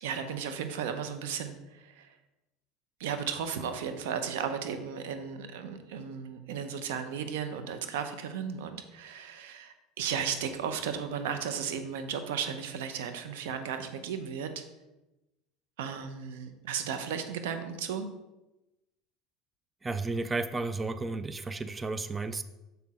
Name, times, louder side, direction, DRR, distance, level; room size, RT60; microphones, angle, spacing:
voice 1, 0.0-2.2 3.0-14.5 15.8-18.1, right 7 dB, 90° right, 8 dB, 0.8 m, -35 dB
voice 2, 19.8-22.4, right 3 dB, 15° right, 12 dB, 0.3 m, -33 dB
6.9 x 5.9 x 3.7 m, 1.0 s
supercardioid pair, 125°, 0 cm